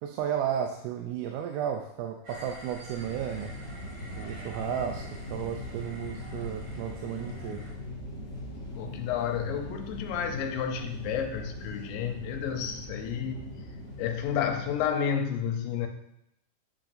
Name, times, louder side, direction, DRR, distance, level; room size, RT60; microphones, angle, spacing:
voice 1, 0.0-3.5 4.2-7.6, right 9 dB, 90° right, 4 dB, 2.4 m, -33 dB
sound 1, 2.2-7.7, equal, 65° right, 4.2 m, -47 dB
sound 2, 2.9-14.9, left 1 dB, 30° left, 1.5 m, -41 dB
voice 2, 8.7-13.5 14.0-15.9, left 8 dB, 80° left, 4 dB, 2.4 m, -31 dB
9.9 x 5.8 x 2.6 m, 0.78 s
omnidirectional pair, 4.2 m